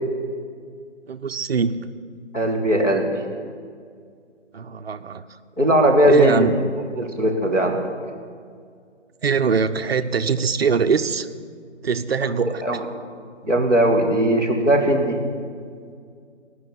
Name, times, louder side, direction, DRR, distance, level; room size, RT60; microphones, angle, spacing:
voice 1, 1.1-1.9 4.5-5.4 6.1-6.6 9.2-11.3 11.8-12.6, right 5 dB, 55° right, 9 dB, 0.7 m, -22 dB
voice 2, 2.3-3.1 5.6-6.5 7.0-7.8 12.6-12.8 13.4-15.2, equal, 5° left, -6 dB, 0.6 m, -19 dB
17.0 x 6.2 x 9.3 m, 2.1 s
figure-of-eight pair, 150°, 36 cm